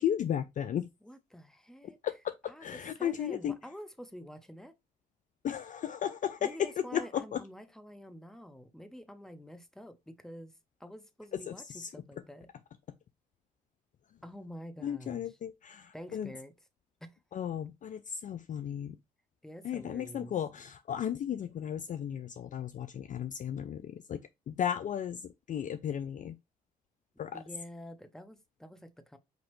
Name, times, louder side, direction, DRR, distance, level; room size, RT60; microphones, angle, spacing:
voice 1, 0.0-0.9 1.8-2.3 2.6-3.6 5.4-7.4 11.3-11.9 14.8-16.3 17.3-19.0 19.6-24.2 24.5-26.3 27.2-27.4, left 9 dB, 40° left, 0.4 m, -35 dB
voice 2, 1.0-2.0 2.5-4.7 6.4-10.5 10.8-12.5 14.2-15.4 15.9-16.5 17.0-17.2 19.4-20.3 27.3-29.2, equal, ahead, 0.8 m, -48 dB
5.3 x 2.9 x 3.1 m
hypercardioid pair, 55°, 20 cm